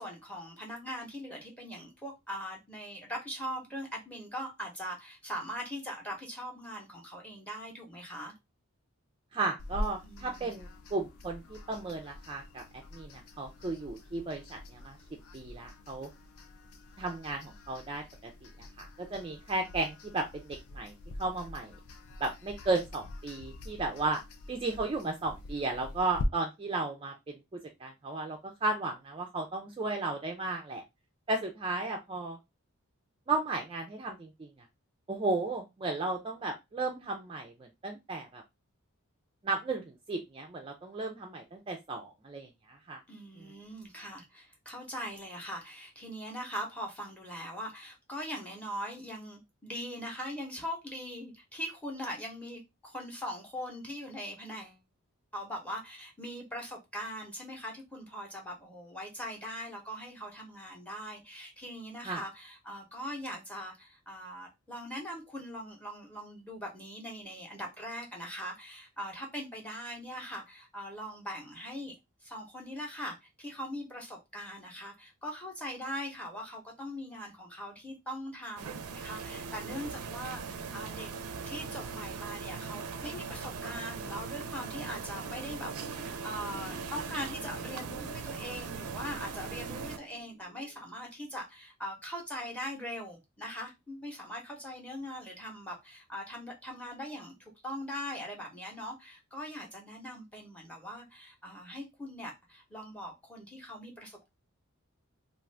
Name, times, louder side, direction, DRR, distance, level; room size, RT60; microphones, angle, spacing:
voice 1, 0.0-8.3 10.0-10.5 43.1-54.8 55.3-71.9 72.2-81.1 81.5-104.3, equal, 5° left, 0.8 m, -41 dB
voice 2, 9.3-15.0 15.3-16.1 17.0-18.3 18.8-20.9 21.2-21.7 22.2-24.2 24.5-27.4 27.8-30.8 31.3-32.4 33.3-34.5 35.1-38.4 39.4-43.0 62.0-62.2, right 3 dB, 25° right, 0.3 m, -34 dB
sound 1, 9.6-26.2, left 2 dB, 80° left, 0.5 m, -45 dB
sound 2, 78.6-90.0, right 5 dB, 90° right, 0.4 m, -40 dB
sound 3, 83.5-90.8, right 2 dB, 50° left, 1.0 m, -51 dB
2.4 x 2.4 x 3.2 m
head